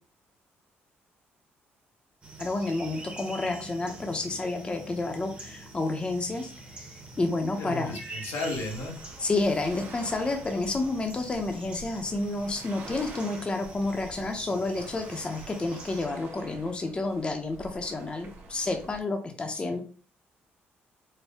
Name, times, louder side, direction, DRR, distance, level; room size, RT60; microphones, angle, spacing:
sound 1, 2.2-16.1, right 2 dB, 25° right, 1.0 m, -45 dB
voice 1, 2.4-8.0 9.2-19.8, left 2 dB, 25° left, 4 dB, 0.6 m, -30 dB
voice 2, 7.6-8.9 19.5-19.8, left 2 dB, 85° left, 0 dB, 1.3 m, -34 dB
sound 2, 8.5-19.0, right 4 dB, 70° right, 1.3 m, -47 dB
4.4 x 2.1 x 3.4 m, 0.39 s
cardioid pair, 120°, 4 cm